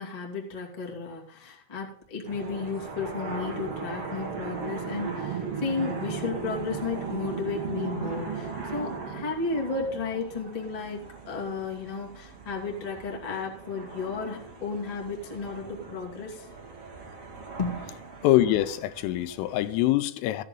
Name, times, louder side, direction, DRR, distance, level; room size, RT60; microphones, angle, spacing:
voice 1, 0.0-16.5 17.6-17.9, left 4 dB, 50° left, 0.4 m, -33 dB
sound 1, 2.2-19.8, right 5 dB, 45° right, 2.0 m, -38 dB
voice 2, 18.2-20.4, left 14 dB, 85° left, 3.4 m, -24 dB
15.0 x 10.5 x 3.8 m
omnidirectional pair, 5.8 m